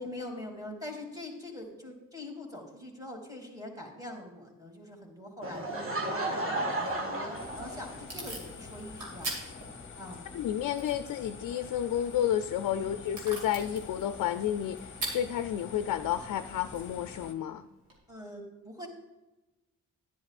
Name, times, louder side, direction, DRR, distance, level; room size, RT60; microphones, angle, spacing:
voice 1, 0.0-9.6 9.9-10.2 12.8-13.0 18.1-18.9, left 1 dB, 10° right, 0 dB, 2.7 m, -43 dB
Laughter / Crowd, 5.4-8.3, right 1 dB, 40° right, 1.6 m, -33 dB
Packing tape duct tape / Tearing, 7.2-18.0, right 2 dB, 80° right, 2.5 m, -45 dB
sound 1, 7.3-17.3, left 5 dB, 35° left, 0.9 m, -46 dB
voice 2, 10.3-17.6, left 10 dB, 65° left, 9 dB, 0.5 m, -31 dB
10.5 x 10.0 x 2.5 m, 1.1 s
supercardioid pair, 55°, 34 cm